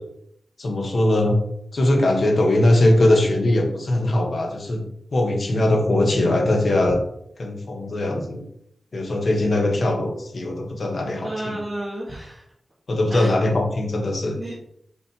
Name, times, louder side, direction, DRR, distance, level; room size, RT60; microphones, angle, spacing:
voice 1, 0.6-1.4 1.7-4.9 5.1-7.0 7.4-8.5 8.9-11.6 12.9-14.4, left 1 dB, 60° left, 3 dB, 1.4 m, -20 dB
voice 2, 11.2-12.4 13.1-13.6 14.4-14.6, right 1 dB, 35° right, -10 dB, 2.4 m, -31 dB
6.7 x 6.0 x 3.0 m, 0.73 s
wide cardioid pair, 95°, 0 cm